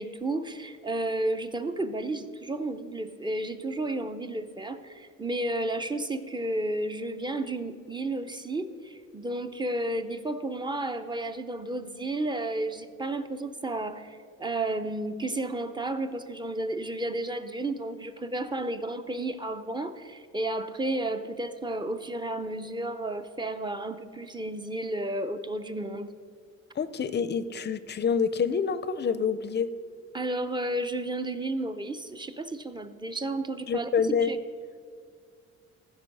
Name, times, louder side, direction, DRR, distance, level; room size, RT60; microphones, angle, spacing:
voice 1, 0.0-26.1 30.1-33.9 34.2-34.4, right 1 dB, 15° right, 9 dB, 0.6 m, -32 dB
voice 2, 26.8-29.7 33.7-34.3, left 6 dB, 35° left, 14 dB, 0.5 m, -27 dB
15.0 x 5.2 x 5.3 m, 2.1 s
cardioid pair, 90°, 30 cm